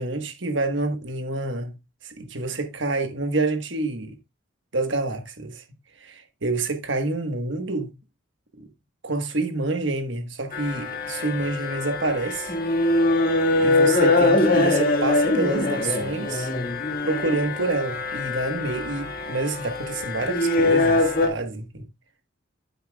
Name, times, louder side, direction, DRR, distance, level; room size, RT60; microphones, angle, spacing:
voice 1, 0.0-1.8 2.0-4.1 4.7-5.6 6.0-7.9 8.6-8.7 9.0-12.5 13.6-16.5 17.0-21.8, right 2 dB, 65° right, 1.4 m, -27 dB
sound 1, 10.5-21.3, left 2 dB, 45° left, 1.8 m, -23 dB
9.1 x 8.2 x 2.3 m
head